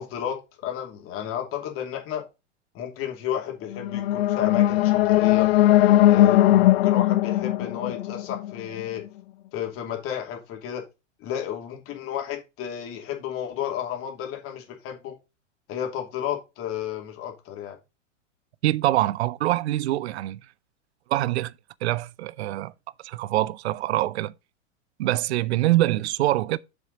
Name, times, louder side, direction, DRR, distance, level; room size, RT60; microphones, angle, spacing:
voice 1, 0.0-2.2 2.7-5.5 6.1-9.0 9.5-10.8 11.2-15.1 15.7-17.8, left 10 dB, 35° left, 2.6 m, -32 dB
sound 1, 3.7-8.8, left 14 dB, 55° left, 0.5 m, -19 dB
voice 2, 18.6-20.4 21.1-21.5 21.8-22.7 23.0-24.3 25.0-26.6, right 15 dB, 60° right, 0.5 m, -24 dB
7.1 x 6.8 x 3.9 m
figure-of-eight pair, 100°, 37 cm